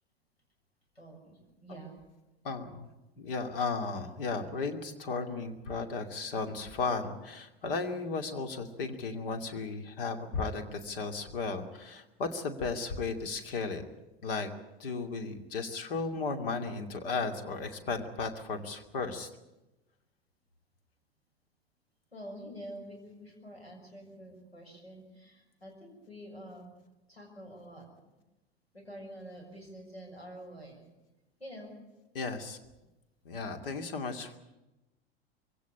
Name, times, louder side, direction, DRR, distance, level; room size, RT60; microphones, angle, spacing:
voice 1, 0.9-1.9 22.1-26.7 27.1-27.9 28.7-30.8 31.4-31.7, equal, 90° left, 0 dB, 6.6 m, -47 dB
voice 2, 2.4-2.9 3.2-13.8 14.2-14.5 14.8-19.3 32.1-32.6 33.2-34.4, left 4 dB, 65° left, 6 dB, 2.6 m, -35 dB
23.0 x 17.0 x 10.0 m, 1.0 s
figure-of-eight pair, 80°, 30 cm